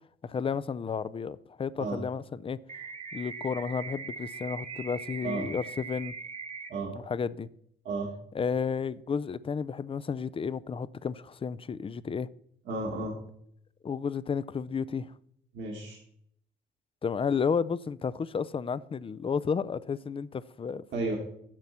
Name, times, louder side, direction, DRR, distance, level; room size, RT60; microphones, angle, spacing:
voice 1, 0.2-2.6 3.1-6.1 7.1-7.5 8.3-12.3 13.8-15.1 17.0-20.8, left 6 dB, 25° left, 0.4 m, -32 dB
sound 1, 2.7-6.7, right 5 dB, 35° right, 1.4 m, -40 dB
voice 2, 12.7-13.1 15.5-16.0 20.9-21.2, right 3 dB, 65° right, 1.8 m, -32 dB
7.6 x 5.5 x 7.3 m
cardioid pair, 90°, 20 cm